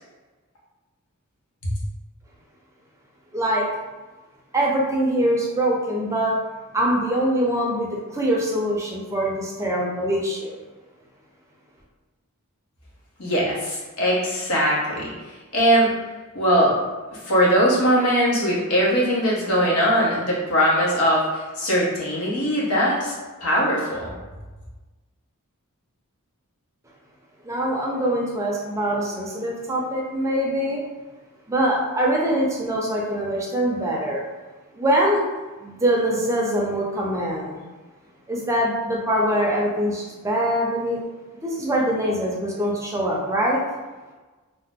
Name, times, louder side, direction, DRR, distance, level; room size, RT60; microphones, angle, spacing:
voice 1, 3.3-3.7 4.5-6.4 6.7-10.6 27.4-30.8 31.5-34.2 34.7-35.2 35.6-37.6 38.3-41.0 41.4-43.6, right 1 dB, 15° right, -3 dB, 0.4 m, -23 dB
voice 2, 13.2-15.1 15.5-15.9 16.3-16.8 17.3-23.1 23.4-24.1, equal, 80° left, -5 dB, 1.0 m, -20 dB
2.7 x 2.0 x 3.5 m, 1.3 s
head